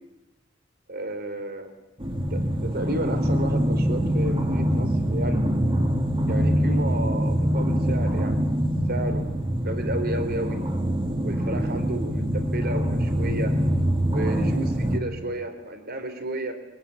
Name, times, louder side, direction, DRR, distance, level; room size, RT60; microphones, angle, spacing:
voice 1, 0.9-1.7 2.3-5.5 6.3-8.5 8.9-10.6 11.2-13.5 14.1-16.5, right 1 dB, 55° right, 8 dB, 3.8 m, -32 dB
sound 1, 2.0-15.0, equal, 25° right, 2.9 m, -24 dB
23.5 x 19.5 x 9.6 m, 0.96 s
head